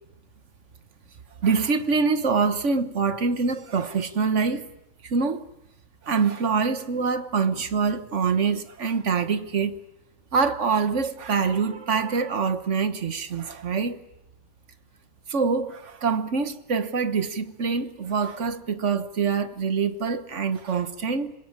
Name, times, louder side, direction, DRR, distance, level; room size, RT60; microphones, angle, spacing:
voice 1, 1.4-4.7 5.0-5.5 6.0-9.8 10.3-14.0 15.3-21.3, right 5 dB, 60° right, 1.6 m, -25 dB
26.5 x 20.5 x 8.8 m
omnidirectional pair, 1.4 m